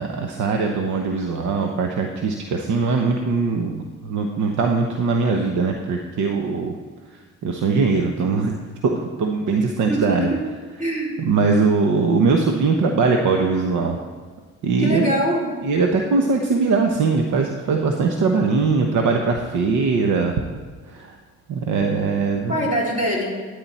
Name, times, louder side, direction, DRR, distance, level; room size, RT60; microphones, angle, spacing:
voice 1, 0.0-6.7 7.1-8.5 8.8-10.3 11.2-14.0 14.6-15.1 15.6-20.4 20.9-21.2 21.5-22.7, right 4 dB, 75° right, 3 dB, 1.1 m, -21 dB
voice 2, 9.9-10.4 10.8-11.2 14.8-15.5 22.5-23.3, equal, 25° right, -4 dB, 4.0 m, -23 dB
13.0 x 9.8 x 4.3 m, 1.5 s
cardioid pair, 90°, 30 cm